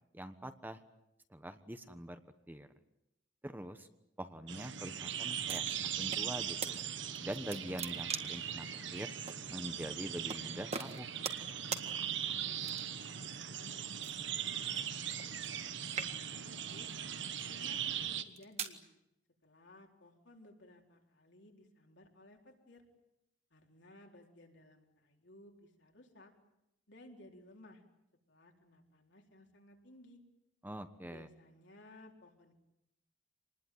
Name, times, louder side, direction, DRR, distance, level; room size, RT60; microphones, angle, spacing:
voice 1, 0.1-0.8 1.3-2.2 2.5-2.7 3.4-3.9 4.2-6.8 7.2-8.7 8.9-9.2 9.5-11.1 30.6-31.3, right 1 dB, 10° right, 9 dB, 1.2 m, -44 dB
sound 1, 4.5-18.2, right 9 dB, 75° right, 1.6 m, -40 dB
sound 2, 5.5-6.3 6.6-6.7 7.2-8.5 9.3-9.4 10.3-10.4 10.7-11.5 11.7-11.9 12.6-13.0 14.0-15.6 15.9-16.5 17.2-17.4 18.1-18.8, right 5 dB, 35° right, 1.8 m, -41 dB
voice 2, 12.2-16.9 17.5-18.8 19.4-22.9 23.5-26.3 26.9-27.8 28.3-30.2 31.1-32.5, left 1 dB, 70° left, 1 dB, 4.4 m, -59 dB
27.0 x 20.5 x 9.5 m, 0.86 s
head